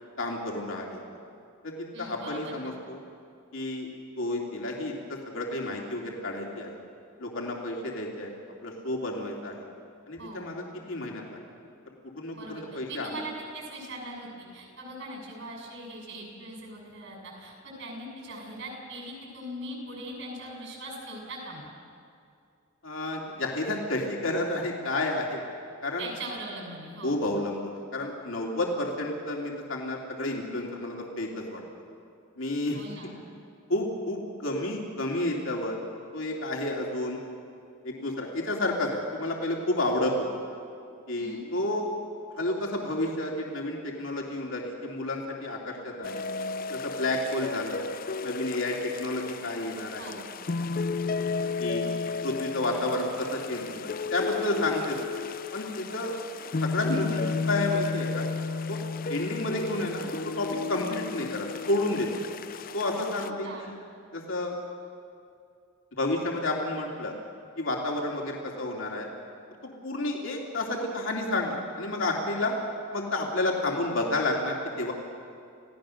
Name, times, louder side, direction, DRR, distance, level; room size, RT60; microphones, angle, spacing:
voice 1, 0.2-1.0 1.6-3.0 3.5-3.9 4.2-4.9 5.3-6.8 7.2-8.3 8.6-9.6 10.1-11.4 12.2-13.2 22.8-25.4 25.8-26.1 27.0-31.6 32.4-32.8 33.7-35.8 36.1-37.2 37.8-40.4 41.1-41.9 42.3-46.3 46.7-47.9 48.2-50.2 51.6-51.8 52.2-55.0 55.5-56.2 56.6-58.3 58.7-58.8 59.1-62.1 62.7-63.7 64.1-64.5 65.9-67.1 67.6-69.1 69.8-72.6 72.9-74.9, left 2 dB, 70° left, -1 dB, 2.8 m, -30 dB
voice 2, 1.9-2.7 10.2-10.6 12.3-21.7 26.0-27.4 32.7-33.2 41.2-41.4 50.0-50.3 63.2-63.7, right 1 dB, 65° right, -1 dB, 7.2 m, -41 dB
sound 1, 46.0-63.3, left 4 dB, 45° left, 0.5 m, -33 dB
28.5 x 17.0 x 6.5 m, 2.4 s
head